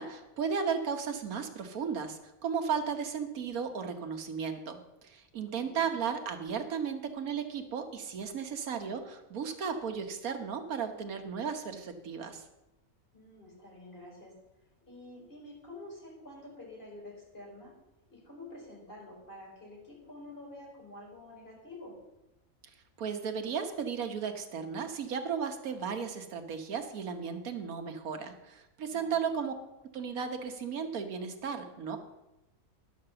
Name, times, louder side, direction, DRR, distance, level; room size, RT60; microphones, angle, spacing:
voice 1, 0.0-12.4 23.0-29.5 29.9-32.0, right 6 dB, 90° right, 6 dB, 1.5 m, -35 dB
voice 2, 5.5-6.0 13.1-14.3 14.8-17.7 18.1-22.0 28.9-29.2, left 1 dB, 40° left, -4 dB, 4.5 m, -48 dB
11.0 x 5.9 x 6.7 m, 0.96 s
omnidirectional pair, 1.5 m